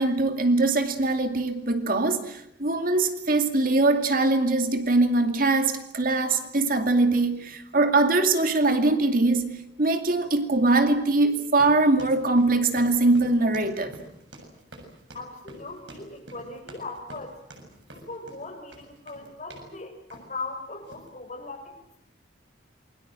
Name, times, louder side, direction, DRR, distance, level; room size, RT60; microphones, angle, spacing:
voice 1, 0.0-13.9, right 2 dB, 50° right, 7 dB, 2.4 m, -22 dB
sound 1, 11.6-19.7 20.1-20.4 20.8-21.1, right 1 dB, 90° right, 7.3 m, -47 dB
voice 2, 15.1-17.4 17.9-22.1, left 3 dB, 40° left, 4 dB, 6.4 m, -39 dB
28.0 x 23.0 x 7.7 m, 0.74 s
head